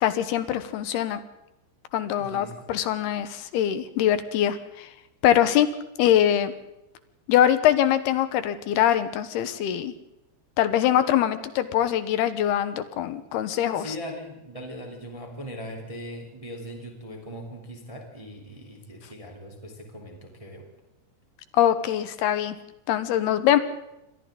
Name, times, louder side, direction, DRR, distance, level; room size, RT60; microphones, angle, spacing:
voice 1, 0.0-1.2 1.9-4.9 5.2-5.7 6.0-6.5 7.3-9.9 10.6-13.9 21.5-22.6 22.9-23.6, left 11 dB, 75° left, 11 dB, 2.9 m, -23 dB
voice 2, 2.2-2.7 13.7-20.6, equal, 10° right, 1 dB, 2.9 m, -40 dB
28.0 x 24.0 x 3.9 m, 0.92 s
omnidirectional pair, 4.9 m